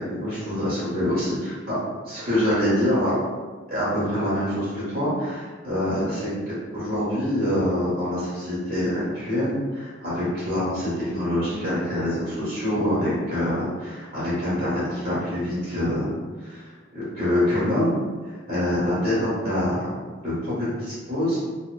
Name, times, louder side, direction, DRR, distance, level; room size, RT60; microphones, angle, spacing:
voice 1, 0.0-1.8 2.0-3.2 3.7-16.1 16.4-18.0 18.2-19.9 20.2-21.4, left 1 dB, 45° right, -10 dB, 1.3 m, -25 dB
2.7 x 2.2 x 2.2 m, 1.4 s
head